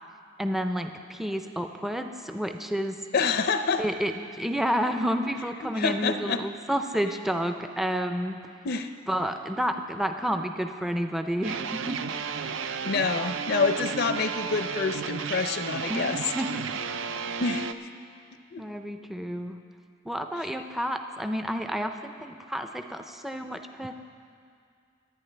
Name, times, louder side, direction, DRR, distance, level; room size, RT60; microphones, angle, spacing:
voice 1, 0.4-3.0 3.8-8.4 9.1-12.3 15.9-16.6 18.6-19.6 20.1-23.9, equal, ahead, 6 dB, 0.4 m, -30 dB
voice 2, 3.1-3.8 5.7-6.4 8.6-8.9 12.8-16.2 17.4-17.9 18.5-18.6, left 4 dB, 50° left, 8 dB, 0.5 m, -27 dB
sound 1, 11.4-17.7, right 6 dB, 65° right, 0.5 m, -33 dB
25.5 x 9.3 x 3.3 m, 2.3 s
head